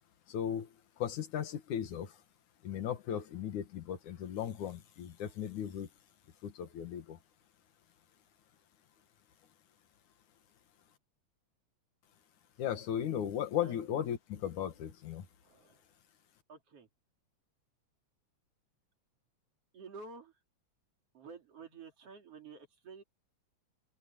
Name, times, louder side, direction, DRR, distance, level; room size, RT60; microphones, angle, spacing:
voice 1, 0.3-0.7 1.0-2.1 2.6-5.9 6.4-7.2 12.6-15.2, left 9 dB, 85° left, 3.2 m, -36 dB
voice 2, 15.4-15.8 16.5-16.9 19.7-20.3 21.1-23.0, right 4 dB, 55° right, 3.8 m, -50 dB
open air
omnidirectional pair, 3.3 m